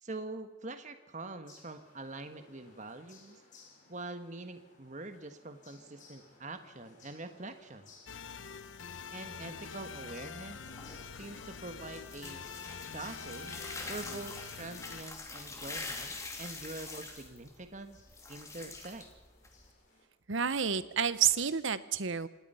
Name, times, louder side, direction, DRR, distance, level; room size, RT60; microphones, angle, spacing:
voice 1, 0.0-3.4 3.9-7.9 9.1-10.6 11.2-12.4 12.8-13.6 13.9-18.0 18.3-19.0, right 2 dB, 35° right, 8 dB, 1.3 m, -44 dB
sound 1, 1.4-20.0, left 3 dB, 40° left, 4.7 m, -61 dB
sound 2, 8.1-15.0, left 6 dB, 70° left, 0.7 m, -45 dB
sound 3, 10.7-19.7, left 3 dB, 15° left, 2.5 m, -45 dB
voice 2, 20.3-22.3, right 7 dB, 70° right, 15 dB, 0.9 m, -29 dB
26.5 x 18.5 x 5.6 m, 1.0 s
head